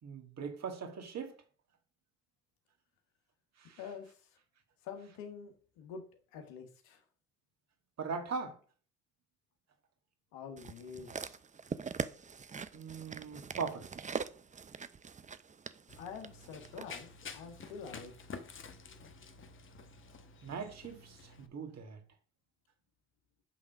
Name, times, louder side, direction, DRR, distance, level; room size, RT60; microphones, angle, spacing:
voice 1, 0.0-1.3 3.6-3.8 8.0-8.6 12.7-13.9 20.4-22.0, right 5 dB, 50° right, 2.0 m, -40 dB
voice 2, 3.8-4.3 4.8-6.0 6.3-7.0 10.3-11.4 16.0-18.4 18.8-19.2, left 6 dB, 80° left, 1.5 m, -47 dB
sound 1, 10.6-16.9 17.7-17.8, right 6 dB, 20° right, 0.6 m, -42 dB
Run, 15.9-21.5, left 5 dB, 35° left, 1.1 m, -50 dB
8.6 x 3.7 x 5.9 m
hypercardioid pair, 65°, 34 cm